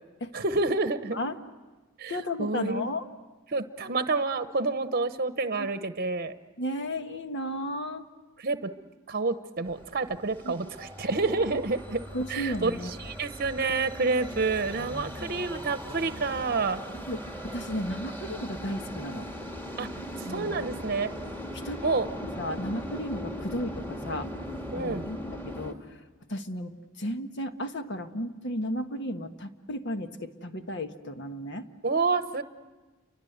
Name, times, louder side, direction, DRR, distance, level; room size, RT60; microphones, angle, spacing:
voice 1, 0.3-1.2 2.0-2.9 3.5-6.3 8.4-8.7 9.1-12.0 12.3-16.8 19.8-19.9 20.3-21.1 21.8-22.1 24.7-25.1 31.8-32.4, right 3 dB, 45° right, 10 dB, 0.9 m, -28 dB
voice 2, 2.1-3.0 5.5-5.7 6.6-8.1 10.4-10.5 11.5-11.6 12.1-12.9 17.1-17.2 17.5-19.3 20.2-20.6 21.5-22.0 22.4-24.3 24.7-25.2 25.4-26.0 26.3-31.7, left 1 dB, 60° left, 7 dB, 1.4 m, -34 dB
sound 1, 9.6-25.7, equal, 10° left, 2.4 m, -39 dB
29.5 x 24.0 x 8.0 m, 1.2 s
head